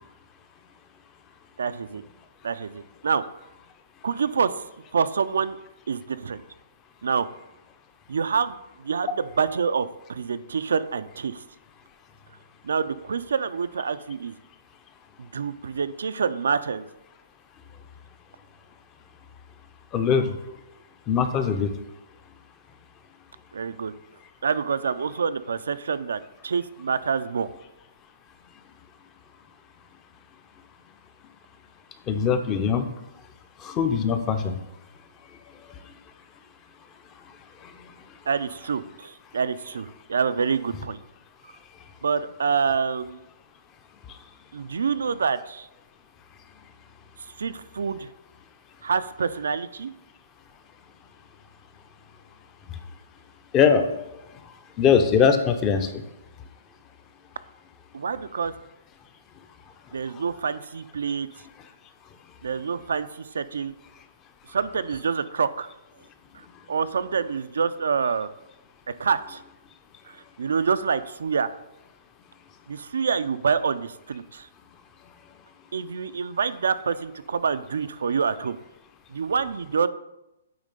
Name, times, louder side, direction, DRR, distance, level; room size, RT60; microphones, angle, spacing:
voice 1, 1.6-2.0 2.4-3.2 4.0-4.5 4.9-5.6 5.9-6.4 7.0-7.3 8.1-11.4 12.6-14.3 15.2-16.8 23.5-23.9 24.4-27.5 38.3-41.0 42.0-43.2 44.5-45.7 47.4-48.1 48.8-49.9 57.9-58.5 59.9-61.3 62.4-63.7 64.5-65.7 66.7-68.3 68.9-69.4 70.1-71.5 72.7-74.5 75.7-78.6 79.1-79.9, right 6 dB, 90° right, 12 dB, 0.4 m, -26 dB
voice 2, 19.9-20.3 21.1-21.7 32.1-32.8 33.6-34.6 37.6-37.7 53.5-53.9 54.8-56.0, left 7 dB, 20° left, 8 dB, 0.5 m, -21 dB
8.7 x 3.2 x 5.3 m, 0.90 s
hypercardioid pair, 165°, 0 cm